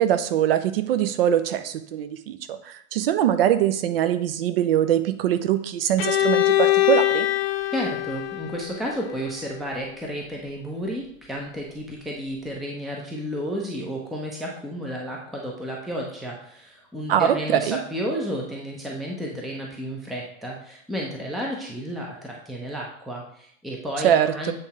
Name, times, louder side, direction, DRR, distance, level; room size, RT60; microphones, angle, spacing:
voice 1, 0.0-7.3 17.1-17.8 24.0-24.5, right 10 dB, 45° right, 10 dB, 0.7 m, -22 dB
Bowed string instrument, 6.0-9.8, left 15 dB, 45° left, 0.6 m, -23 dB
voice 2, 7.7-24.5, equal, ahead, -1 dB, 0.6 m, -32 dB
7.9 x 3.6 x 4.2 m, 0.69 s
figure-of-eight pair, 100°, 41 cm